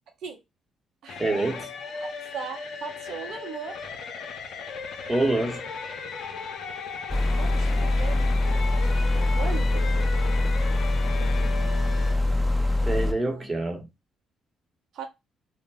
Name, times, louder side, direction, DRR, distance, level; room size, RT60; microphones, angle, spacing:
sound 1, 1.1-12.1, left 5 dB, 65° left, 0.6 m, -37 dB
voice 1, 1.2-1.7 5.1-5.9 12.9-13.9, right 2 dB, 20° right, 1.0 m, -26 dB
voice 2, 2.0-3.8 7.3-9.9 11.2-11.7 13.1-13.5 14.9-15.0, right 6 dB, 70° right, 0.8 m, -39 dB
sound 2, 7.1-13.1, left 2 dB, ahead, 0.6 m, -23 dB
2.2 x 2.1 x 3.3 m
supercardioid pair, 60°, 0 cm